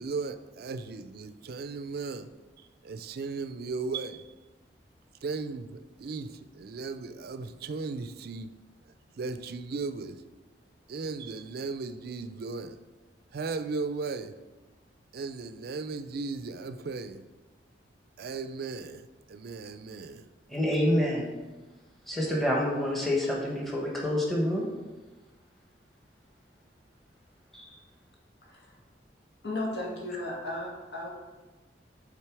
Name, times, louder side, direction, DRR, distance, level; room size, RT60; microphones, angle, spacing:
voice 1, 0.0-2.3 2.6-4.3 5.2-8.5 8.9-10.2 10.9-12.8 13.3-14.4 15.1-17.2 18.2-20.3, right 4 dB, 60° right, 0.4 m, -36 dB
voice 2, 20.5-21.3 22.1-24.7 27.5-27.7, left 1 dB, ahead, 1.2 m, -27 dB
voice 3, 28.4-28.8 29.4-31.1, left 1 dB, 70° left, 1.8 m, -35 dB
7.4 x 3.9 x 4.7 m
head